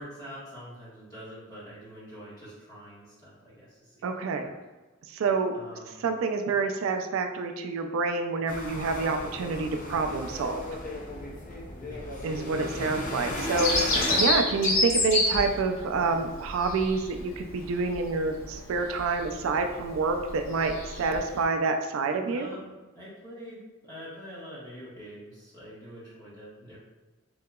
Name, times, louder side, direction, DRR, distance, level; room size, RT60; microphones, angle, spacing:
voice 1, 0.0-4.5 5.5-5.9 11.7-12.3 22.3-26.8, equal, 20° left, -10 dB, 1.4 m, -45 dB
voice 2, 4.0-4.5 5.1-5.6 6.0-10.6 12.2-22.5, right 4 dB, 75° right, 5 dB, 0.3 m, -28 dB
sound 1, 8.5-14.3, left 1 dB, 40° left, 0.5 m, -35 dB
Bird vocalization bird call bird song, 13.6-21.4, left 2 dB, 70° left, 0.7 m, -29 dB
3.8 x 2.8 x 2.2 m, 1.2 s
head